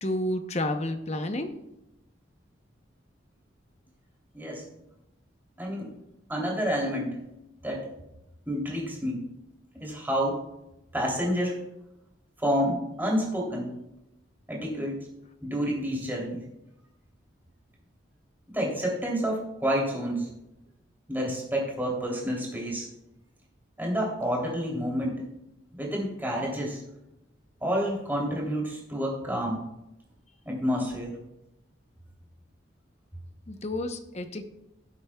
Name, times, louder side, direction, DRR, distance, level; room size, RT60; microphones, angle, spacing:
voice 1, 0.0-1.6 33.5-34.5, left 1 dB, 35° left, 7 dB, 0.8 m, -30 dB
voice 2, 4.3-4.7 5.6-5.9 6.3-7.2 7.6-7.9 8.5-9.3 9.8-10.4 10.9-11.6 12.4-13.7 14.5-15.1 15.4-16.4 18.5-20.3 21.1-22.9 23.8-25.2 25.7-26.8 27.6-29.6 30.4-31.2, equal, 10° right, -3 dB, 3.1 m, -29 dB
17.5 x 8.0 x 2.3 m, 0.89 s
head